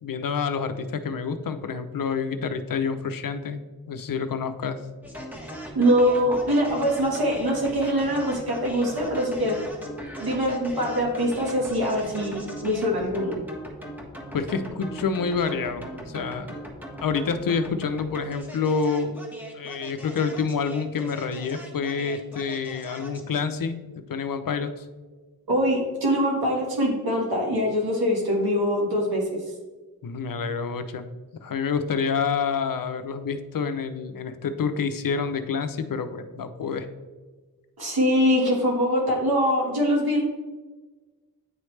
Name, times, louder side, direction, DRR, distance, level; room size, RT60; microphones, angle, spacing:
voice 1, 0.0-3.6 3.9-4.8 14.3-16.5 17.0-19.2 19.5-24.7 30.0-31.1 31.4-36.9, left 5 dB, 65° left, 10 dB, 0.6 m, -28 dB
sound 1, 5.0-23.3, equal, 5° right, 1.2 m, -39 dB
voice 2, 5.7-9.7 10.2-13.3 25.5-29.2 37.8-40.2, equal, 85° right, -1 dB, 1.4 m, -23 dB
9.5 x 3.2 x 3.2 m, 1.3 s
cardioid pair, 55°, 36 cm